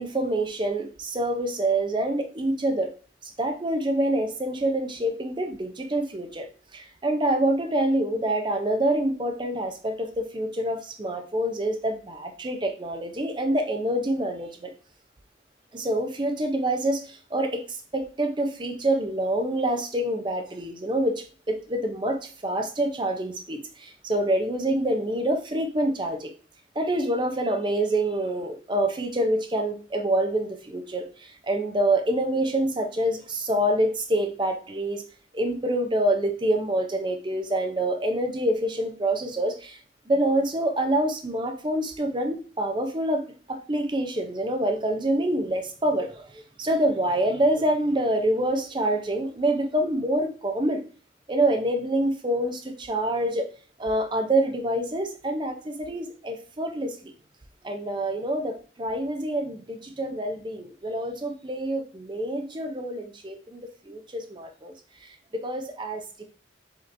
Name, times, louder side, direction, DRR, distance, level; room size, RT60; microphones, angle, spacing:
voice 1, 0.0-2.9 3.2-14.7 15.7-26.3 26.8-35.0 35.3-39.8 40.1-43.2 43.5-50.8 51.3-53.5 53.8-57.0 57.6-64.7 65.0-66.2, right 1 dB, 25° right, 4 dB, 0.5 m, -26 dB
5.1 x 2.9 x 2.6 m, 0.40 s
head